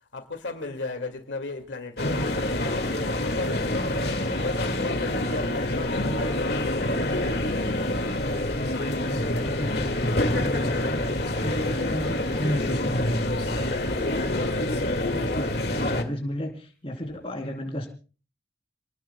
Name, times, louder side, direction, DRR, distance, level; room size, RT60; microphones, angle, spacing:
voice 1, 0.1-2.7 3.1-7.2, left 3 dB, 90° left, 2.3 m, -35 dB
sound 1, 2.0-16.0, left 1 dB, 60° left, 2.1 m, -27 dB
voice 2, 5.5-6.1 9.0-13.7 15.1-17.9, equal, 30° left, 3.5 m, -32 dB
29.0 x 19.0 x 2.3 m
head